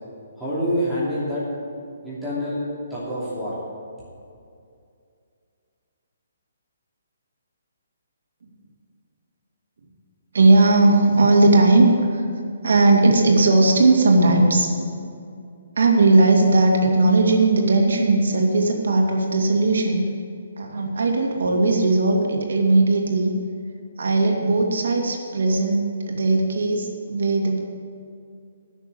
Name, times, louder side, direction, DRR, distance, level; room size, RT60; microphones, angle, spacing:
voice 1, 0.4-1.5 2.0-2.6 2.9-3.6, equal, ahead, -13 dB, 2.7 m, -26 dB
voice 2, 10.3-12.2 12.6-14.7 15.8-20.1 20.6-23.3 24.0-27.6, right 2 dB, 75° right, 1 dB, 2.1 m, -18 dB
10.0 x 6.5 x 8.7 m, 2.4 s
hypercardioid pair, 155°, 0 cm